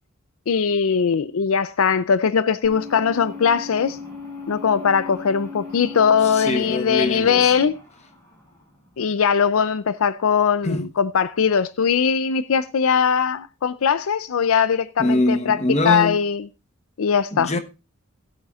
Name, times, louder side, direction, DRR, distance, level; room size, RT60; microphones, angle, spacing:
voice 1, 0.5-4.0 4.5-7.7 9.0-15.6 15.8-16.4 17.0-17.5, left 6 dB, 75° left, 0.5 m, -20 dB
sound 1, 2.6-9.0, left 3 dB, 15° left, 3.9 m, -38 dB
voice 2, 6.2-7.5 10.6-10.8 15.0-16.2 17.3-17.6, left 2 dB, 30° left, 1.1 m, -23 dB
17.0 x 8.3 x 2.4 m
head